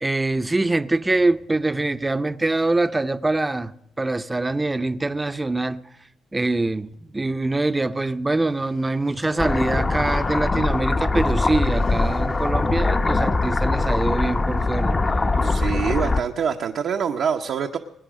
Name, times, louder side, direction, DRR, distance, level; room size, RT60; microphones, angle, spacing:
voice 1, 0.0-3.7 4.0-5.8 6.3-14.9, right 2 dB, 15° right, 0.6 m, -24 dB
sound 1, 8.8-13.8 14.2-14.6, left 2 dB, 60° left, 2.0 m, -39 dB
sound 2, 9.4-16.2, left 3 dB, 30° left, 0.7 m, -22 dB
voice 2, 15.4-17.8, right 7 dB, 65° right, 0.8 m, -25 dB
20.0 x 9.9 x 6.3 m
cardioid pair, 90°, 0 cm